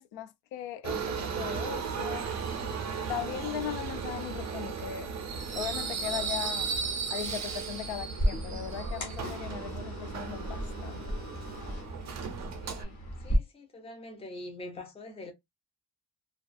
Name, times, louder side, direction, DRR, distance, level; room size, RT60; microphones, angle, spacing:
voice 1, 0.0-2.3 3.1-5.1 5.5-6.7 7.1-11.2, left 11 dB, 85° left, 0.5 m, -38 dB
Subway metro underground, 0.8-12.8, right 5 dB, 40° right, 0.5 m, -35 dB
sound 1, 8.1-13.4, equal, 40° left, 0.8 m, -35 dB
voice 2, 12.6-15.3, left 1 dB, 15° left, 0.5 m, -44 dB
2.3 x 2.3 x 2.4 m
cardioid pair, 175°, 44 cm